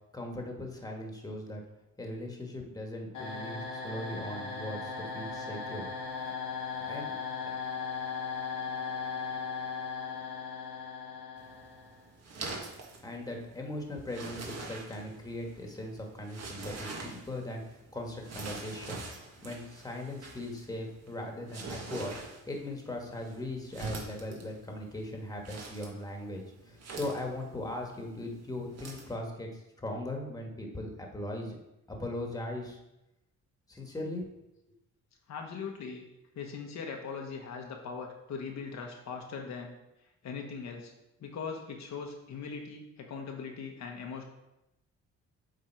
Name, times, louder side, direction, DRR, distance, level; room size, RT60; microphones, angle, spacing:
voice 1, 0.1-1.6 2.0-5.9 6.1-6.4 6.8-7.1 7.4-7.5 13.0-19.0 19.4-22.2 22.5-31.6 31.9-32.8 33.7-34.2, left 1 dB, 10° left, 1 dB, 1.4 m, -39 dB
sound 1, 3.1-12.1, left 5 dB, 85° left, 1.7 m, -37 dB
sound 2, 11.4-29.1, right 3 dB, 60° right, 1.6 m, -45 dB
voice 2, 35.3-36.1 36.3-39.7 40.2-40.9 41.2-44.2, left 5 dB, 65° left, 2 dB, 1.1 m, -40 dB
7.6 x 3.6 x 4.5 m, 0.91 s
cardioid pair, 90°, 30 cm